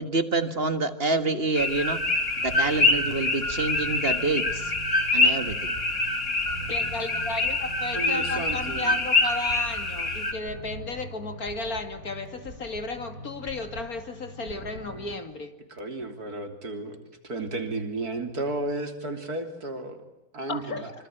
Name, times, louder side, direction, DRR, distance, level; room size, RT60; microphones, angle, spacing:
voice 1, 0.0-2.0 2.4-4.7 5.1-5.7, right 3 dB, 40° right, 10 dB, 1.8 m, -27 dB
sound 1, 1.5-10.3, left 2 dB, 50° left, 3.2 m, -25 dB
sound 2, 1.9-15.2, right 2 dB, 55° right, 7.0 m, -42 dB
voice 2, 6.7-15.6 20.5-20.9, left 3 dB, 65° left, 8 dB, 3.0 m, -34 dB
voice 3, 7.9-9.0 15.7-17.0 17.2-20.0 20.3-20.9, right 2 dB, 75° right, 6 dB, 3.9 m, -33 dB
25.5 x 25.5 x 9.0 m, 0.97 s
omnidirectional pair, 1.7 m